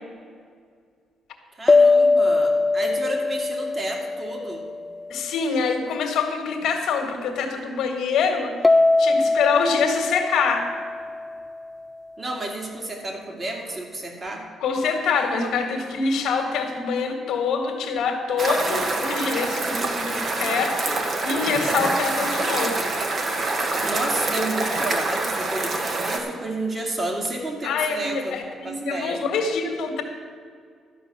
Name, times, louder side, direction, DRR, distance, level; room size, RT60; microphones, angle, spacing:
voice 1, 1.6-4.6 12.2-14.4 23.8-29.2, right 2 dB, 35° right, 1 dB, 2.4 m, -31 dB
sound 1, 1.7-5.2 8.6-11.7, left 3 dB, 25° left, 0.3 m, -21 dB
voice 2, 5.1-10.6 14.6-22.9 27.6-30.0, left 5 dB, 80° left, 4 dB, 1.7 m, -25 dB
sound 2, 18.4-26.2, right 2 dB, 50° right, 1.5 m, -25 dB
12.5 x 5.3 x 8.3 m, 2.1 s
cardioid pair, 90°, 0 cm